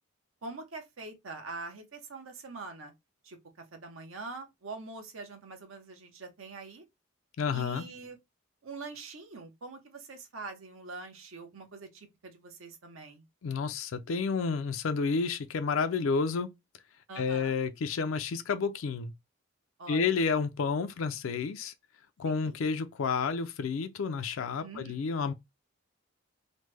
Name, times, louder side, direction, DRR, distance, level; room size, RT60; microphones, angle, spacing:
voice 1, 0.4-2.9 3.2-3.4 3.7-6.8 7.5-8.2 8.6-13.2 17.1-17.6 19.8-20.1 22.2-22.5 24.6-25.1, right 3 dB, 75° right, 0.8 m, -44 dB
voice 2, 7.4-7.8 13.4-16.5 17.2-19.1 19.9-21.7 22.2-25.3, left 5 dB, 75° left, 0.4 m, -30 dB
3.1 x 2.1 x 3.2 m
head